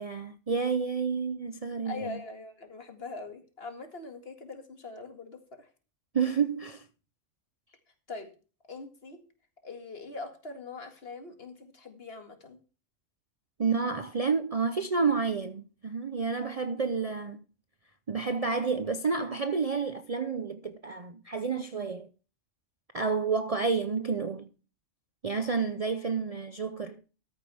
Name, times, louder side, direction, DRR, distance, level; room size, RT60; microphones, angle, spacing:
voice 1, 0.0-2.2 6.1-6.8 13.6-17.4 18.1-22.1 22.9-24.5 25.2-27.0, right 5 dB, 40° right, 0.6 m, -30 dB
voice 2, 1.8-5.7 8.1-8.3 8.7-9.2 9.6-12.6, left 4 dB, 50° left, 2.2 m, -42 dB
13.5 x 9.0 x 3.4 m
omnidirectional pair, 1.3 m